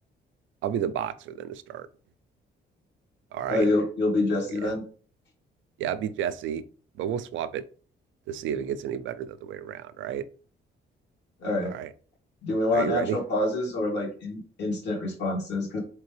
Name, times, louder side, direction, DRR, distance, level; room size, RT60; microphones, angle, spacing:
voice 1, 0.6-1.9 3.3-3.7 5.8-6.6 7.0-7.6 8.3-10.3 11.7-11.9 12.7-13.2, right 9 dB, 75° right, 13 dB, 0.4 m, -31 dB
voice 2, 3.5-4.8 11.4-11.7 12.4-15.8, left 2 dB, 60° left, -1 dB, 1.7 m, -26 dB
3.4 x 3.2 x 3.3 m, 0.40 s
cardioid pair, 90°, 20 cm